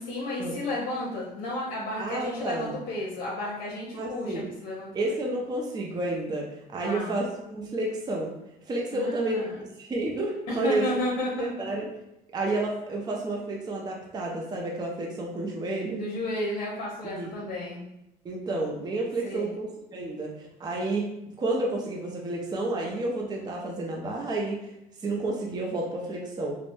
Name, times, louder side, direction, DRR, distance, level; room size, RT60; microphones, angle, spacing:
voice 1, 0.0-4.9 6.8-7.2 8.9-9.5 10.5-11.5 15.9-17.9 19.2-19.6, left 2 dB, 90° left, -6 dB, 0.7 m, -32 dB
voice 2, 2.0-2.8 3.9-4.5 4.9-8.3 8.7-10.9 11.4-11.9 12.3-16.0 17.0-17.3 18.2-21.1 21.4-24.7 25.0-26.6, right 2 dB, 25° right, -1 dB, 0.5 m, -30 dB
3.2 x 2.0 x 2.6 m, 0.87 s
cardioid pair, 110°, 17 cm